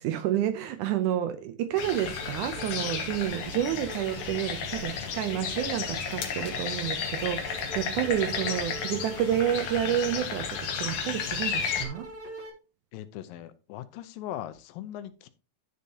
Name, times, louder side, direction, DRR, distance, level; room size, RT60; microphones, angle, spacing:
voice 1, 0.0-12.1, right 11 dB, 80° right, 1.9 m, -30 dB
sound 1, 1.8-11.9, left 6 dB, 60° left, 1.9 m, -33 dB
sound 2, 2.1-2.3 2.5-4.4 4.7-5.7 6.0-12.5, right 1 dB, 50° right, 0.7 m, -44 dB
voice 2, 12.9-15.3, left 12 dB, 85° left, 2.5 m, -39 dB
10.5 x 6.6 x 2.8 m
omnidirectional pair, 4.0 m